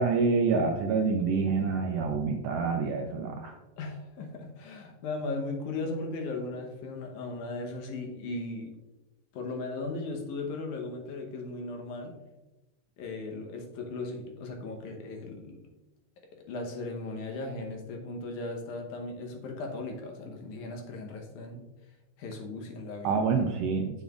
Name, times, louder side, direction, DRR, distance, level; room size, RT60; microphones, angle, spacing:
voice 1, 0.0-3.6 23.0-24.0, right 4 dB, 80° right, 3 dB, 1.4 m, -27 dB
voice 2, 3.8-8.7 9.3-12.1 13.0-15.6 16.3-21.6 22.2-23.2, left 2 dB, 90° left, 2 dB, 2.5 m, -37 dB
7.9 x 7.2 x 2.4 m, 1.1 s
omnidirectional pair, 3.3 m